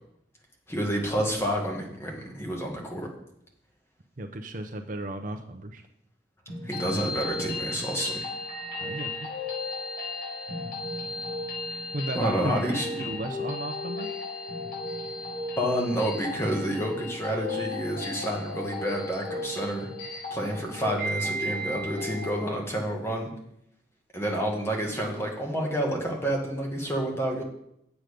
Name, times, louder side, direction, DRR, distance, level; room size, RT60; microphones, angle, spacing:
voice 1, 0.7-3.1 6.6-8.2 12.1-13.1 15.6-19.9 20.3-23.3 24.1-27.4, equal, 15° left, 0 dB, 1.6 m, -29 dB
voice 2, 4.2-5.8 8.8-9.3 11.9-14.2, right 1 dB, 50° right, 5 dB, 0.7 m, -35 dB
sound 1, 6.5-22.4, left 2 dB, 55° left, 3.9 m, -35 dB
8.1 x 7.8 x 5.1 m, 0.76 s
head